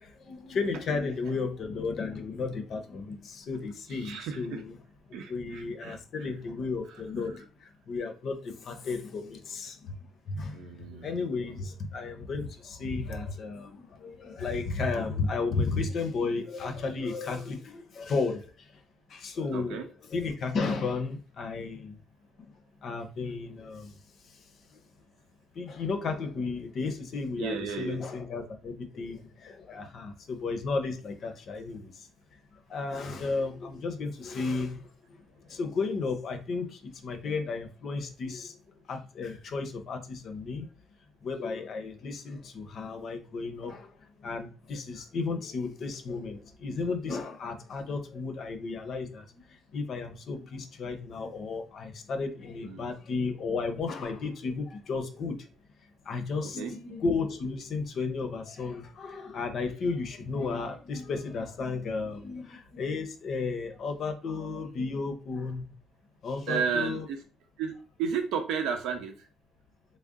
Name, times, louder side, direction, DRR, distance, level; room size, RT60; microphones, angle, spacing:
voice 1, 0.0-4.8 5.1-10.0 10.3-10.6 10.9-18.7 19.1-22.0 22.4-22.5 22.8-24.0 24.2-24.4 24.7-24.8 25.5-32.1 32.7-38.5 38.9-40.7 41.2-43.9 44.2-55.5 56.0-65.7 66.2-67.1, left 4 dB, 40° left, 0.6 m, -34 dB
voice 2, 3.9-4.6 5.1-6.3 10.5-11.2 19.5-19.9 27.4-28.0 52.6-53.0 56.4-56.7 66.5-67.2 67.6-67.7 68.0-69.3, right 6 dB, 90° right, 0.8 m, -33 dB
3.6 x 2.1 x 3.6 m
cardioid pair, 180°, 0 cm